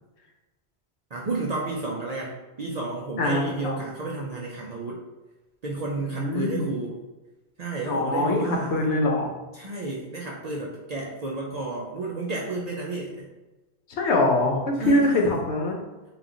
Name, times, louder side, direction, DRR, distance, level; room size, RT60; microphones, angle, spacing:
voice 1, 1.1-5.0 5.6-6.9 7.6-8.9 9.5-13.3 14.8-15.4, right 2 dB, 55° right, -3 dB, 0.4 m, -31 dB
voice 2, 3.2-3.9 6.0-6.7 7.9-9.3 13.9-15.8, left 2 dB, 80° left, 1 dB, 1.0 m, -24 dB
3.0 x 2.4 x 3.7 m, 1.1 s
omnidirectional pair, 1.1 m